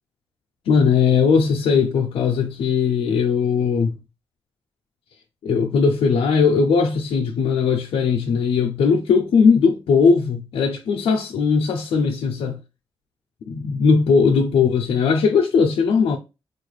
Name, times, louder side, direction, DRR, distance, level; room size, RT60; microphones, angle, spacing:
voice 1, 0.7-4.0 5.4-12.6 13.5-16.2, left 5 dB, 80° left, 0.6 m, -19 dB
4.3 x 2.4 x 3.2 m
cardioid pair, 115°, 10 cm